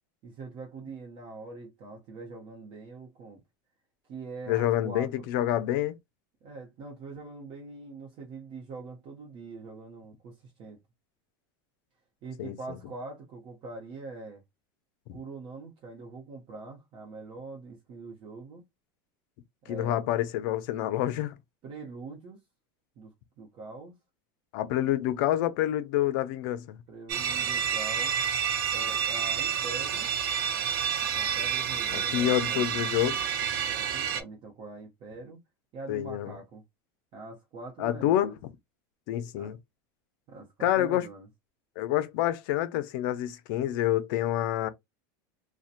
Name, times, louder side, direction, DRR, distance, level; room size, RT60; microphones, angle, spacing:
voice 1, 0.2-3.4 4.1-5.2 6.4-10.8 12.2-14.4 15.1-18.6 19.6-20.0 21.6-22.4 23.0-24.0 26.9-28.2 28.7-30.1 31.0-33.0 33.6-35.4 35.7-36.6 37.1-38.4 39.4-39.6 40.3-41.3, right 3 dB, 45° right, 0.8 m, -43 dB
voice 2, 4.5-6.0 12.4-12.5 15.1-15.2 19.7-21.3 24.5-26.8 31.9-33.2 35.9-36.3 37.8-38.3 39.1-39.6 40.6-41.1 41.8-44.7, left 13 dB, 65° left, 0.5 m, -27 dB
sound 1, 27.1-34.2, right 7 dB, 80° right, 0.5 m, -29 dB
2.7 x 2.1 x 2.4 m
supercardioid pair, 135°, 11 cm